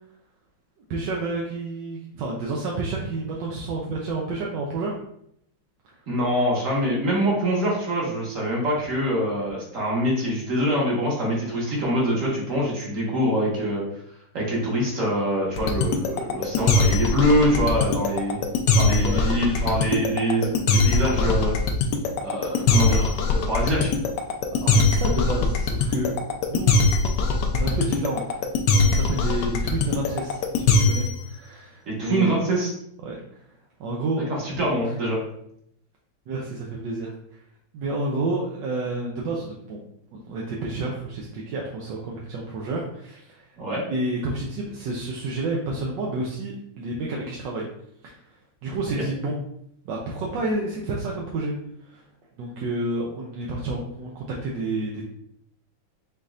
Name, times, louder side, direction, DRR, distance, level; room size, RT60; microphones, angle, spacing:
voice 1, 0.9-5.0 19.0-19.3 24.6-26.1 26.5-26.7 27.5-28.4 28.7-32.3 33.0-33.4 33.8-34.3 36.3-37.1 37.7-39.8 40.1-43.5 43.9-47.7 48.0-48.2 48.6-49.4 49.8-51.5 51.9-52.0 52.4-55.0, right 2 dB, 70° right, -2 dB, 1.2 m, -30 dB
voice 2, 6.1-13.8 14.3-18.4 18.7-21.5 22.2-23.9 31.9-32.7 34.3-35.2 43.6-43.8 48.9-49.0, equal, 40° right, -4 dB, 1.6 m, -24 dB
sound 1, 15.6-31.2, left 3 dB, 70° left, 1.0 m, -21 dB
5.3 x 3.9 x 2.4 m, 0.73 s
omnidirectional pair, 2.3 m